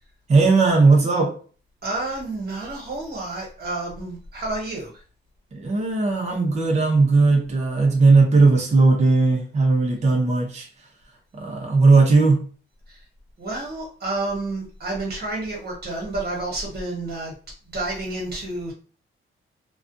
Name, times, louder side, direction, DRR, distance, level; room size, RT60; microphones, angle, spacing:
voice 1, 0.3-1.3 5.5-10.7 11.3-12.4, right 3 dB, 35° right, 0.6 m, -17 dB
voice 2, 1.8-4.9 12.9-13.0 13.4-17.3 17.7-18.7, right 2 dB, 50° right, 1.2 m, -30 dB
2.3 x 2.2 x 2.5 m
wide cardioid pair, 150°, 21 cm